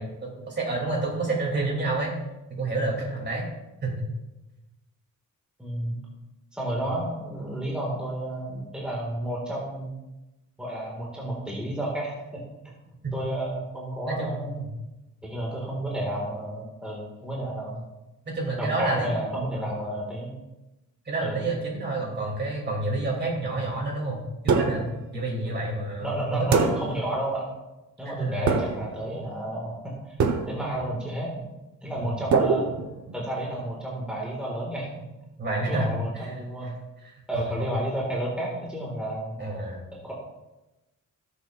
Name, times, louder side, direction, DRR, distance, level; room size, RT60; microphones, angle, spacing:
voice 1, 0.0-2.1 2.6-3.4 3.8-4.0 13.0-13.1 14.1-14.7 18.3-19.7 21.1-26.5 28.0-28.5 31.9-32.2 35.4-36.3 37.3-37.7 39.4-39.8, right 2 dB, 35° right, -1 dB, 2.8 m, -29 dB
voice 2, 5.6-6.0 6.5-9.9 10.6-12.1 13.1-14.7 15.2-17.8 18.6-20.3 21.2-21.4 26.0-27.5 28.0-30.1 30.5-31.5 31.8-32.7 33.1-34.9 35.7-36.8 37.3-39.4 40.0-40.1, right 1 dB, 5° right, -4 dB, 1.8 m, -31 dB
sound 1, 24.5-25.0 26.5-27.1 28.5-29.0 30.2-30.8 32.3-33.3, right 5 dB, 65° right, 1.0 m, -24 dB
17.5 x 7.0 x 2.5 m, 1.0 s
wide cardioid pair, 145°, 31 cm